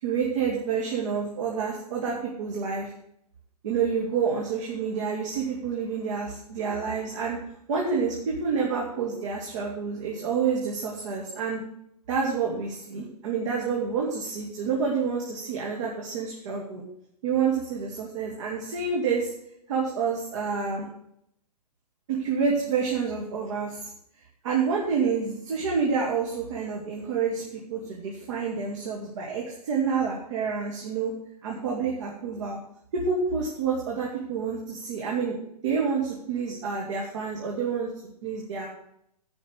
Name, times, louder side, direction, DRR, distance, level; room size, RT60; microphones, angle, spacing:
voice 1, 0.0-2.9 3.6-7.4 7.7-11.6 12.1-16.8 17.2-19.3 19.7-20.9 22.1-23.8 24.4-31.1 31.4-32.6 32.9-35.4 35.6-37.9 38.2-38.7, right 5 dB, 50° right, -2 dB, 2.3 m, -28 dB
9.9 x 5.8 x 7.9 m, 0.73 s
figure-of-eight pair, 120°, 20 cm